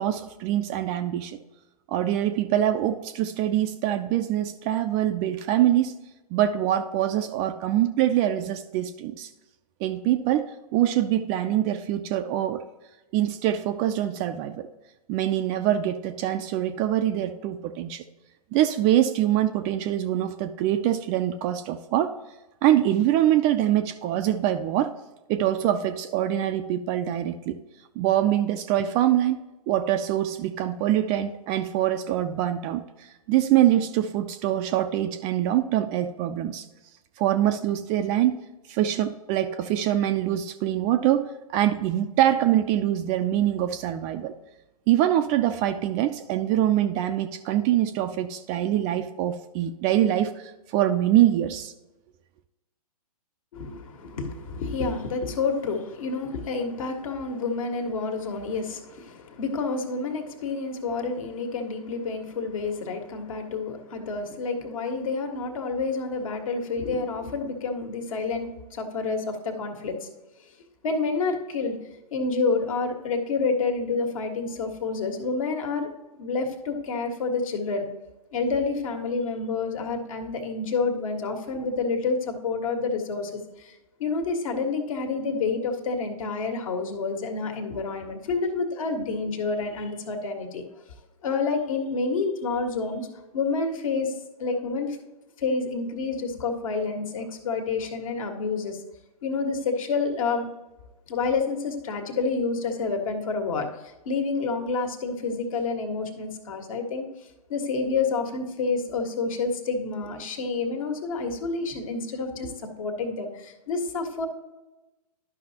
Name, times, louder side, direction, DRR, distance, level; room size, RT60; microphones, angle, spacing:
voice 1, 0.0-1.4 1.9-5.9 6.3-9.3 9.8-12.6 13.1-14.7 15.1-18.0 18.5-22.1 22.6-24.9 25.3-27.6 28.0-36.7 37.2-38.4 38.7-44.4 44.9-51.7, right 12 dB, 25° right, 8 dB, 0.4 m, -24 dB
voice 2, 53.5-70.1 70.8-71.7 72.1-75.9 76.2-77.9 78.3-83.7 84.0-90.6 91.2-93.1 93.3-94.1 94.4-95.0 95.4-98.8 99.2-100.5 101.1-107.0 107.5-114.3, left 4 dB, 60° left, 4 dB, 1.6 m, -28 dB
12.0 x 5.7 x 2.8 m, 1.0 s
figure-of-eight pair, 120°, 20 cm